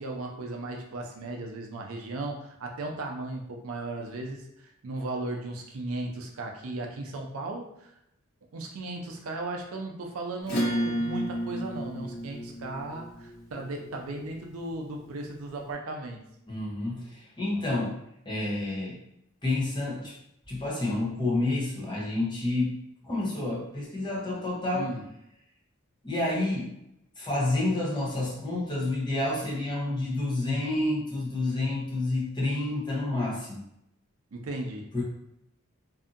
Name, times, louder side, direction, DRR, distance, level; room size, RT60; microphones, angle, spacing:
voice 1, 0.0-4.4 4.8-7.7 8.5-16.2 24.7-25.0 34.3-34.9, right 2 dB, 80° right, 2 dB, 0.5 m, -36 dB
Acoustic guitar / Strum, 10.4-15.4, equal, 50° left, 1.0 m, -33 dB
voice 2, 16.5-18.0 18.2-19.0 19.4-20.1 20.5-24.9 26.0-26.7 27.2-33.6 34.9-35.0, left 2 dB, 20° left, -5 dB, 0.8 m, -29 dB
2.7 x 2.5 x 2.4 m, 0.80 s
head